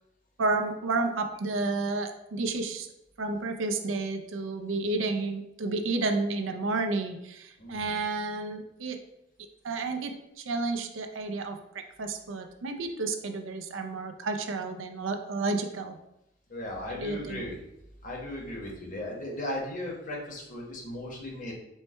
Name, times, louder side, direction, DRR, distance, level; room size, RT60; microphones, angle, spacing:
voice 1, 0.4-2.9 3.2-9.0 9.6-16.0 16.9-17.5, right 3 dB, 90° right, 6 dB, 0.5 m, -31 dB
voice 2, 7.6-8.0 16.5-17.6 18.0-21.5, left 1 dB, 40° left, -2 dB, 0.9 m, -36 dB
4.4 x 2.2 x 4.3 m, 0.86 s
head